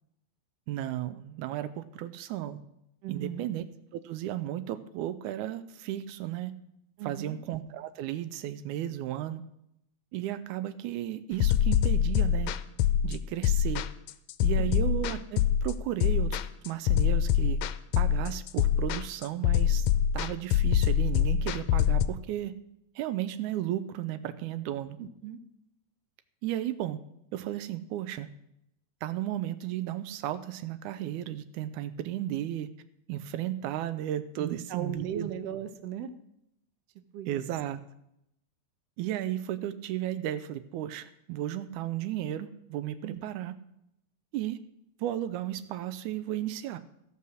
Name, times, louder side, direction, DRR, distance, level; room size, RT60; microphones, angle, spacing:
voice 1, 0.7-2.6 3.1-3.6 3.9-6.5 7.0-9.4 10.1-12.5 13.0-13.8 14.4-16.4 16.6-17.6 18.0-19.9 20.1-22.5 23.0-25.0 26.4-27.0 27.3-28.3 29.0-32.7 33.1-35.3 37.3-37.8 39.0-43.5 44.3-44.6 45.0-46.8, right 12 dB, 90° right, 12 dB, 2.1 m, -34 dB
voice 2, 3.0-3.5 7.0-7.4 14.6-14.8 25.0-25.4 34.4-36.1 37.1-37.4 43.0-43.2, right 9 dB, 70° right, 9 dB, 1.7 m, -37 dB
sound 1, 11.4-22.1, left 9 dB, 80° left, 1.7 m, -25 dB
15.0 x 5.6 x 6.3 m, 0.80 s
omnidirectional pair, 3.4 m